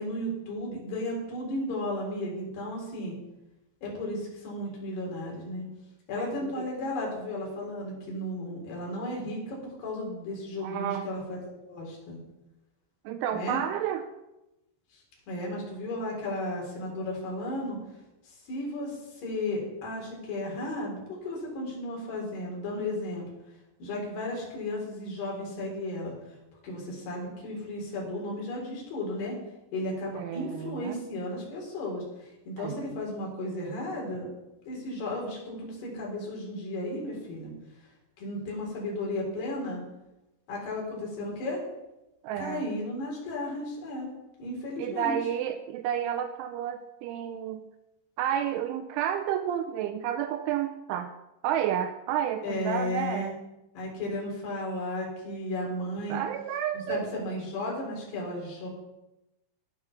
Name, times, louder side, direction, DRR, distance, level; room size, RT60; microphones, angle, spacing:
voice 1, 0.0-3.1 3.8-5.7 6.1-12.2 13.3-13.6 14.9-15.0 15.3-17.8 18.3-23.2 23.8-26.1 26.6-29.4 29.7-34.3 34.7-37.5 38.2-39.8 40.5-41.6 42.4-44.1 44.4-45.2 52.4-53.3 53.7-56.2 56.9-58.7, left 1 dB, 55° left, -2 dB, 6.0 m, -34 dB
voice 2, 6.2-6.7 10.6-11.1 13.1-14.1 30.1-31.0 32.6-32.8 42.2-42.7 44.8-47.6 48.2-51.1 51.4-53.4 56.1-57.1, right 10 dB, 80° right, 8 dB, 2.9 m, -31 dB
12.5 x 9.4 x 7.1 m, 0.95 s
omnidirectional pair, 5.9 m